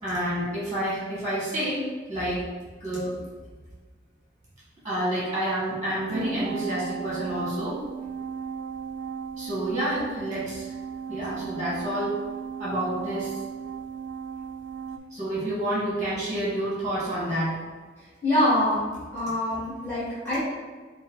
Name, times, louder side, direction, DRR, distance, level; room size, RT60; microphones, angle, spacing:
voice 1, 0.0-1.8 2.1-2.4 2.8-3.1 4.8-7.8 9.4-10.7 11.1-12.2 12.6-13.4 15.1-17.6, right 1 dB, 15° right, -8 dB, 1.2 m, -29 dB
sound 1, 6.1-15.0, right 7 dB, 70° right, 0.3 m, -36 dB
voice 2, 18.2-18.8 19.1-20.4, left 1 dB, 10° left, -14 dB, 1.5 m, -24 dB
4.9 x 2.1 x 3.8 m, 1.4 s
head